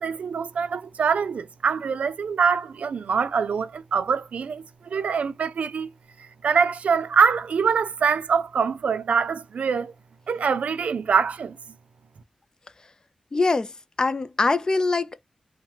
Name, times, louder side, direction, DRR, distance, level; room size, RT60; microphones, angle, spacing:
voice 1, 0.0-5.9 6.2-9.9 10.3-11.6, right 6 dB, 90° right, 0.3 m, -24 dB
voice 2, 13.3-15.2, left 3 dB, 35° left, 0.3 m, -23 dB
2.8 x 2.1 x 3.1 m
wide cardioid pair, 115°, 2 cm